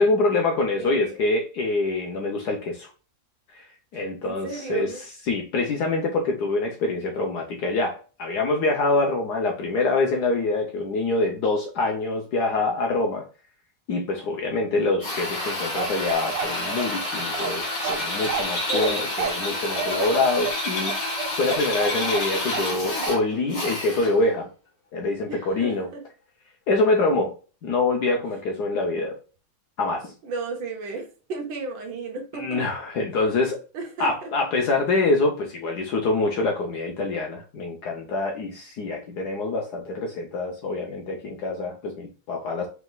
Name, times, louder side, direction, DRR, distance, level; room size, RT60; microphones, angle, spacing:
voice 1, 0.0-2.9 3.5-3.7 3.9-4.9 5.3-13.2 13.9-21.0 21.4-24.5 24.9-25.9 26.7-27.3 27.6-29.2 29.8-30.1 32.3-33.6 34.0-42.7, left 3 dB, 65° left, 2 dB, 1.3 m, -25 dB
voice 2, 0.8-1.2 3.9-5.0 18.7-19.2 25.3-26.0 30.2-32.6 33.7-34.3, right 3 dB, 85° right, 2 dB, 1.8 m, -34 dB
Drill, 15.0-24.3, left 1 dB, 40° left, 1.9 m, -29 dB
Bark, 15.8-22.8 23.0-23.2, right 7 dB, 65° right, 1.2 m, -31 dB
5.1 x 3.4 x 2.2 m, 0.37 s
omnidirectional pair, 2.0 m